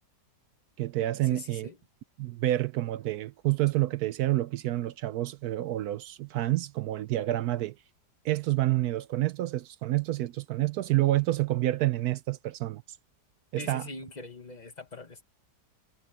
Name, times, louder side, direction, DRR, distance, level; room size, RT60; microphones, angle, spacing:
voice 1, 0.8-1.7 2.2-7.8 8.2-12.8 13.5-13.9, right 15 dB, 70° right, 1.0 m, -28 dB
voice 2, 1.3-1.7 13.6-15.2, left 3 dB, 25° left, 1.3 m, -42 dB
omnidirectional pair, 1.9 m